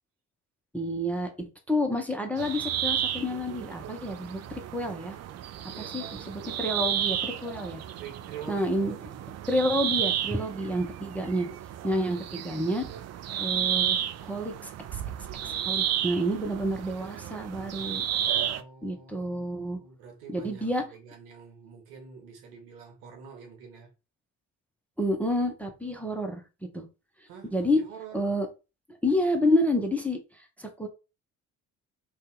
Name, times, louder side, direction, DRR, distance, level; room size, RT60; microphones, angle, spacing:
voice 1, 0.7-5.2 5.8-7.8 8.5-9.0 9.5-11.5 11.8-12.8 13.4-14.0 14.2-15.0 15.4-18.0 18.8-19.8 20.3-20.8 25.0-26.4 26.7-26.9 27.5-27.8 28.1-28.5 29.0-30.2 30.6-30.9, equal, 5° left, 0.6 m, -29 dB
sound 1, 2.4-18.6, right 10 dB, 40° right, 0.4 m, -32 dB
voice 2, 5.7-6.5 8.0-9.1 18.3-23.9 27.3-28.3, right 6 dB, 75° right, 1.1 m, -46 dB
2.7 x 2.3 x 3.7 m
hypercardioid pair, 50°, 45 cm